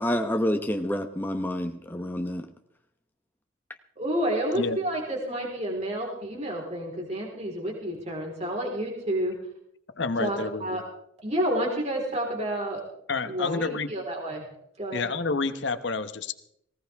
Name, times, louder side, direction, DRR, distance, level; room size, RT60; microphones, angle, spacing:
voice 1, 0.0-2.5, equal, 10° left, 5 dB, 0.9 m, -28 dB
voice 2, 4.0-9.3 10.2-10.8 11.2-12.8 13.3-14.4 14.8-15.1, right 1 dB, 35° right, 0 dB, 4.2 m, -30 dB
voice 3, 9.9-10.8 13.1-13.9 14.9-16.3, left 3 dB, 60° left, 10 dB, 1.0 m, -29 dB
19.5 x 18.0 x 3.5 m, 0.72 s
head